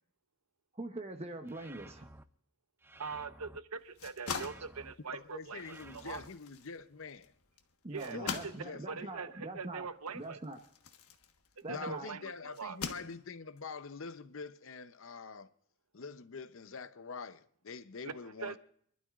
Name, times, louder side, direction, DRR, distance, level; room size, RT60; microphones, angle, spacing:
voice 1, 0.7-2.1 7.8-9.9 10.1-10.6 11.6-12.1, right 2 dB, 30° right, 0.9 m, -43 dB
sound 1, 1.5-2.2 2.8-3.6 4.2-4.9 5.5-6.3, right 2 dB, 10° right, 0.5 m, -54 dB
voice 2, 3.0-6.2 7.9-8.5 8.9-10.4 11.7-12.8 18.0-18.1 18.4-18.6, right 5 dB, 80° right, 0.9 m, -42 dB
sound 2, 3.8-11.9 12.5-13.6, left 5 dB, 75° left, 1.3 m, -44 dB
voice 3, 5.1-7.3 8.1-9.1 11.7-15.5 15.9-18.6, left 5 dB, 60° left, 0.7 m, -45 dB
28.0 x 12.0 x 2.4 m
head